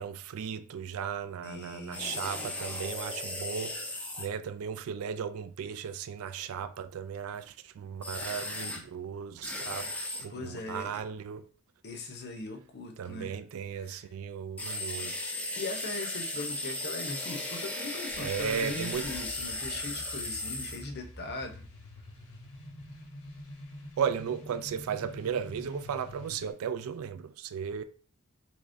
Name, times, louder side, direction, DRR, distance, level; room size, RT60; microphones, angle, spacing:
voice 1, 0.0-3.7 4.2-9.9 10.2-11.5 13.0-15.1 18.2-19.0 24.0-27.8, right 7 dB, 70° right, 0.3 m, -35 dB
voice 2, 1.4-2.5 10.3-11.0 11.8-13.4 13.7-14.1 15.6-21.7, left 2 dB, 50° left, 0.6 m, -40 dB
sound 1, 1.9-4.3 8.0-8.8 9.4-10.2 14.6-20.8, left 2 dB, 5° left, 0.4 m, -36 dB
sound 2, 18.1-26.5, equal, 80° left, 1.0 m, -47 dB
3.5 x 3.0 x 2.5 m
head